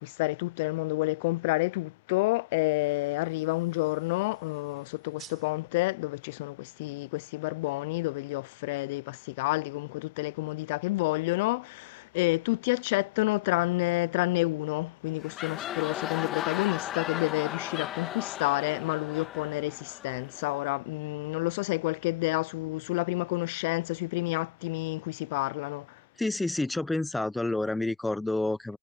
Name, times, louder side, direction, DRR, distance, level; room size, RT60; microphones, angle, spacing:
voice 1, 0.0-26.0, left 21 dB, 65° left, 0.4 m, -29 dB
sound 1, 2.5-7.4, right 11 dB, 40° right, 6.2 m, -57 dB
sound 2, 15.1-20.6, left 12 dB, 40° left, 1.5 m, -37 dB
voice 2, 26.2-28.8, left 2 dB, 5° left, 0.7 m, -29 dB
hypercardioid pair, 115°, 0 cm